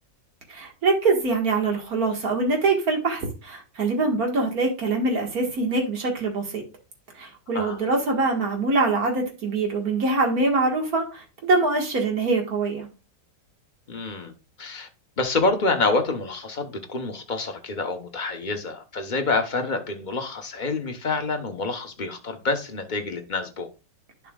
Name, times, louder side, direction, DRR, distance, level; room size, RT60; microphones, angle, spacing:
voice 1, 0.5-6.6 7.2-12.9, right 3 dB, 55° right, 2.1 m, -24 dB
voice 2, 13.9-14.3 14.6-14.9 15.2-23.7, left 3 dB, 35° left, 0.9 m, -27 dB
11.0 x 6.0 x 2.4 m
omnidirectional pair, 1.9 m